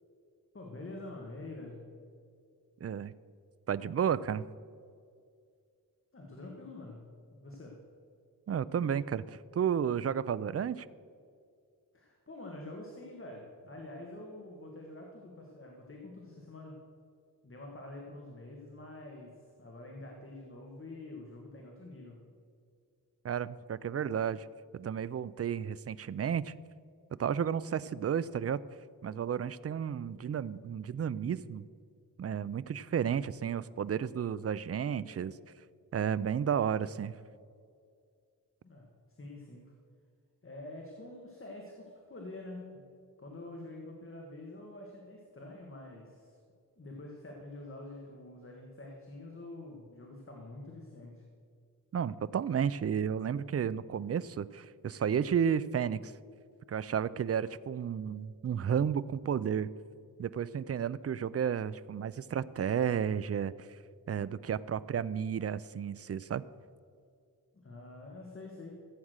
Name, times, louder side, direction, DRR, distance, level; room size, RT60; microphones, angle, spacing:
voice 1, 0.5-1.9 6.1-7.8 11.9-16.8 17.4-22.3 38.6-38.9 39.2-39.7 40.4-42.9 43.2-46.4 46.8-51.3 67.5-68.9, left 2 dB, 35° left, 0 dB, 1.7 m, -47 dB
voice 2, 2.8-3.1 3.7-4.5 8.5-10.9 23.2-24.5 24.7-26.5 27.2-28.6 29.0-31.6 32.2-35.3 35.9-37.1 51.9-56.1 56.7-59.7 60.2-63.5 64.1-66.4, right 8 dB, 40° right, 17 dB, 0.4 m, -32 dB
15.0 x 8.6 x 6.4 m, 2.3 s
wide cardioid pair, 115°, 36 cm